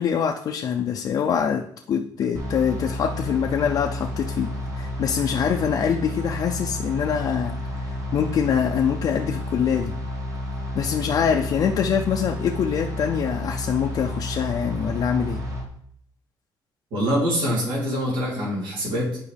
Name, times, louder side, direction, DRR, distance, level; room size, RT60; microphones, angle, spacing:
voice 1, 0.0-9.9 10.7-15.4, left 7 dB, 55° left, 1 dB, 0.5 m, -24 dB
sound 1, 2.3-15.6, left 1 dB, 40° right, 1.5 m, -31 dB
voice 2, 16.9-19.2, equal, 85° right, -5 dB, 3.2 m, -24 dB
9.4 x 4.9 x 3.4 m, 0.66 s
cardioid pair, 135°, 8 cm